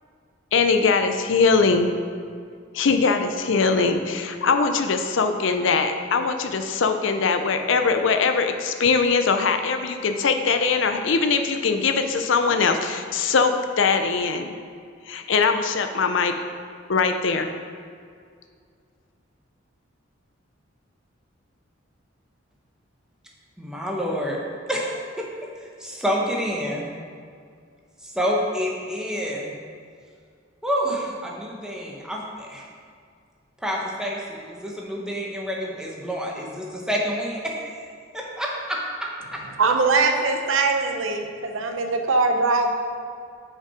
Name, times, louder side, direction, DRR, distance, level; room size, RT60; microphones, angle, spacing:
voice 1, 0.5-1.9 2.7-14.5 15.1-16.3 16.9-17.5, left 4 dB, 70° left, 7 dB, 0.5 m, -21 dB
voice 2, 23.6-24.4 24.7-25.3 25.6-26.8 28.0-29.5 30.6-32.7 33.6-37.8 38.1-39.4, equal, 5° right, -2 dB, 1.0 m, -28 dB
voice 3, 39.6-42.7, right 3 dB, 85° right, 4 dB, 0.7 m, -21 dB
5.8 x 5.7 x 4.9 m, 2.2 s
head